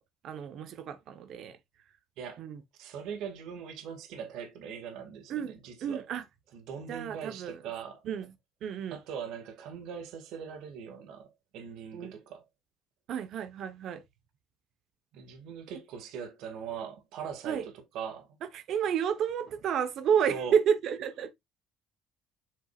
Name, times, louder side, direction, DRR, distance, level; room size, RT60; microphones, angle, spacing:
voice 1, 0.2-1.6 2.4-2.6 5.3-6.2 6.9-7.6 8.0-8.3 8.6-9.0 11.9-12.1 13.1-14.0 15.7-15.8 17.4-17.7 18.4-21.4, right 8 dB, 60° right, 1.0 m, -31 dB
voice 2, 2.7-6.1 6.5-8.0 8.9-12.4 15.1-17.6 17.9-18.3 20.3-20.6, right 7 dB, 80° right, 2.1 m, -41 dB
7.9 x 6.3 x 2.4 m
cardioid pair, 135°, 0 cm